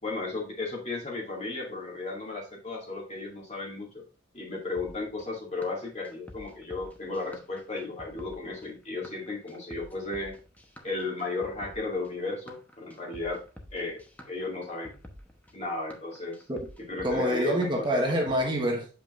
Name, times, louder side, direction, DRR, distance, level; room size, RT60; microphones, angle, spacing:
voice 1, 0.0-4.0 4.3-10.3 10.8-13.4 13.7-14.0 14.3-15.0 15.5-16.4 16.8-17.9, left 3 dB, 35° left, 2.2 m, -34 dB
sound 1, 4.8-18.4, left 1 dB, 10° left, 0.9 m, -49 dB
voice 2, 17.0-18.9, equal, 25° right, 1.2 m, -26 dB
7.4 x 5.4 x 2.5 m
head